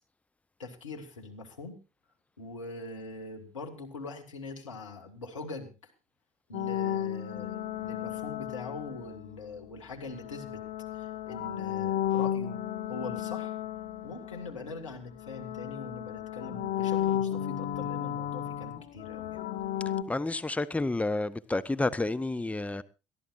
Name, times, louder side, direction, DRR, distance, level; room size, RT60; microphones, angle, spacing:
voice 1, 0.6-1.8 2.4-5.8 6.5-10.6 10.9-12.6 12.9-13.6 14.0-19.4, left 3 dB, 85° left, 2.1 m, -42 dB
sound 1, 6.5-9.4 10.1-14.9 15.2-20.0, left 11 dB, 55° left, 1.4 m, -33 dB
voice 2, 20.1-22.8, left 2 dB, 10° left, 0.8 m, -30 dB
22.5 x 14.0 x 2.6 m
figure-of-eight pair, 50°, 16 cm